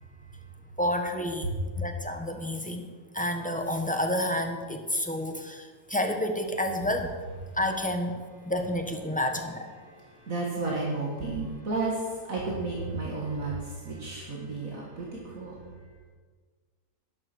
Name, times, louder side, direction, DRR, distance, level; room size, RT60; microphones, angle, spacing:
voice 1, 0.8-1.5 1.8-2.9 3.1-7.2 7.5-8.2 8.4-9.7, left 1 dB, 5° left, 4 dB, 1.2 m, -29 dB
voice 2, 9.9-15.6, right 3 dB, 65° right, -4 dB, 2.6 m, -32 dB
12.0 x 11.5 x 6.3 m, 1.5 s
omnidirectional pair, 1.6 m